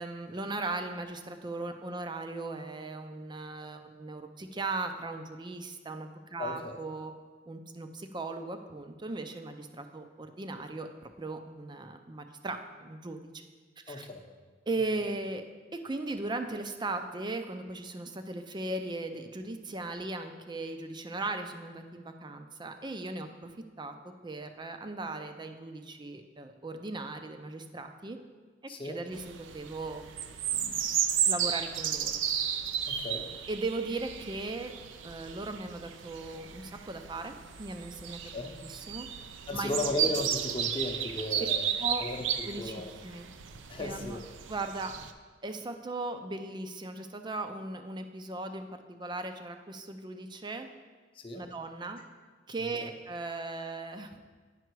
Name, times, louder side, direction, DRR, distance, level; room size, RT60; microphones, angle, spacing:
voice 1, 0.0-7.1 7.5-13.4 13.9-14.1 14.7-15.4 15.7-28.2 28.8-30.0 30.5-31.0 31.3-32.1 33.5-34.7 35.0-39.1 39.5-39.8 41.4-41.5 41.8-42.1 42.4-43.3 43.8-44.2 44.5-44.9 45.4-50.7 51.3-52.0 52.5-54.2, right 2 dB, 25° right, 7 dB, 0.5 m, -38 dB
voice 2, 6.4-6.8 13.9-14.2 28.7-29.0 32.9-33.3 38.2-38.5 39.5-41.7 42.0-42.2 42.6-42.9 43.7-44.2 51.2-51.4 52.8-52.9, left 2 dB, 30° left, 2 dB, 0.8 m, -35 dB
sound 1, 29.1-45.1, right 9 dB, 75° right, 0.5 m, -34 dB
9.1 x 5.7 x 4.6 m, 1.4 s
head